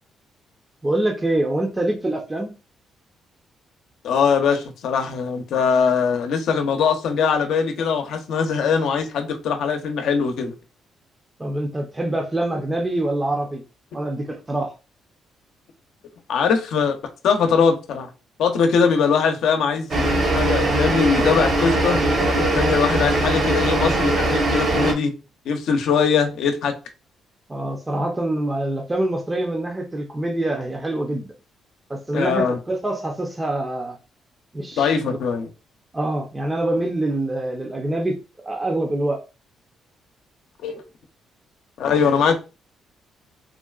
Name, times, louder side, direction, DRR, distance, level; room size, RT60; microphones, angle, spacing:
voice 1, 0.8-2.5 11.4-13.6 13.9-14.7 27.5-31.3 31.9-34.0 34.5-34.9 35.9-38.2 38.4-39.2, right 1 dB, 20° right, 0.6 m, -25 dB
voice 2, 4.0-10.5 16.3-16.9 17.2-18.1 18.4-25.1 25.5-26.7 32.1-32.6 34.8-35.5 40.6-40.8 41.8-42.4, left 6 dB, 75° left, 0.6 m, -21 dB
sound 1, 19.9-24.9, right 1 dB, 55° right, 1.1 m, -20 dB
3.7 x 2.2 x 2.3 m
cardioid pair, 90°, 0 cm